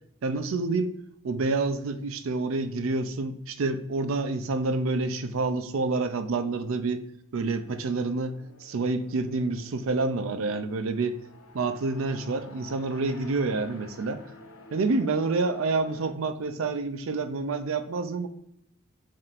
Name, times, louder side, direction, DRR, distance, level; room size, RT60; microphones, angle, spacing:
voice 1, 0.2-1.0 1.2-7.0 7.3-11.2 11.5-14.2 14.7-18.3, right 3 dB, 70° right, 10 dB, 0.4 m, -28 dB
sound 1, 7.5-16.1, left 2 dB, 75° left, 0.6 m, -50 dB
5.3 x 3.6 x 2.4 m, 0.77 s
head